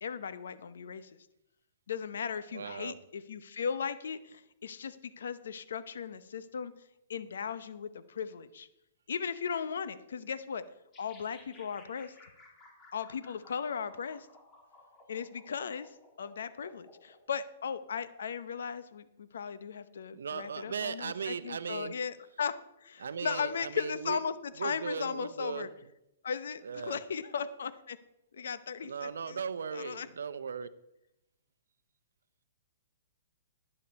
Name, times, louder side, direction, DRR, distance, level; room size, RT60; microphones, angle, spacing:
voice 1, 0.0-1.1 1.9-6.7 7.1-8.7 9.1-10.6 11.0-12.1 12.9-14.3 15.1-15.9 16.2-22.5 22.8-25.7 26.2-28.0 28.3-29.4 29.7-30.1, left 6 dB, 80° left, 0.8 m, -37 dB
voice 2, 2.5-3.0 20.1-22.0 23.0-24.2 24.6-25.7 26.6-27.0 28.4-28.5 28.8-30.7, right 6 dB, 85° right, 0.6 m, -38 dB
sound 1, 10.9-17.2, left 2 dB, 25° left, 2.9 m, -57 dB
11.5 x 9.9 x 4.2 m
hypercardioid pair, 145°, 0 cm